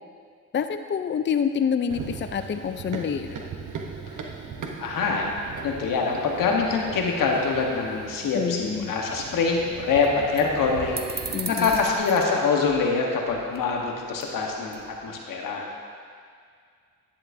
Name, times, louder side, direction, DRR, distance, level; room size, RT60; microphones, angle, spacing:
voice 1, 0.5-3.4 8.3-8.9 11.3-11.8, left 7 dB, 35° left, 9 dB, 0.5 m, -27 dB
Run, 1.9-12.0, right 5 dB, 70° right, 0.9 m, -39 dB
voice 2, 4.8-5.3 5.6-15.6, left 4 dB, 90° left, 0 dB, 1.2 m, -25 dB
sound 1, 10.0-10.1 10.4-10.5 11.0-12.4 12.7-12.9 13.3-13.9 14.2-14.4 14.7-15.1, right 4 dB, 30° right, 0.8 m, -36 dB
10.5 x 10.0 x 2.7 m, 2.1 s
cardioid pair, 65°, 32 cm